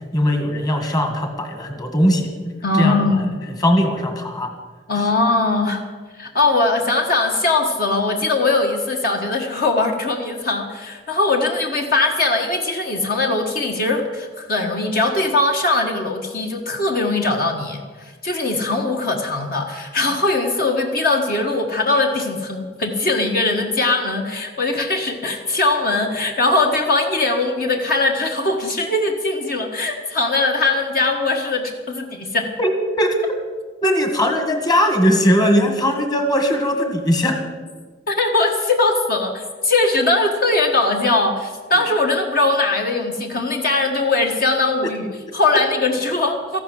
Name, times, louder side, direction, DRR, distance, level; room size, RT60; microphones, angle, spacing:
voice 1, 0.1-3.0 3.6-4.5 32.6-33.4 33.8-37.4, equal, 20° left, 5 dB, 1.9 m, -19 dB
voice 2, 2.6-3.3 4.9-5.8 6.2-32.5 38.1-46.6, left 2 dB, 50° left, 2 dB, 1.6 m, -20 dB
14.5 x 12.0 x 7.6 m, 1.4 s
head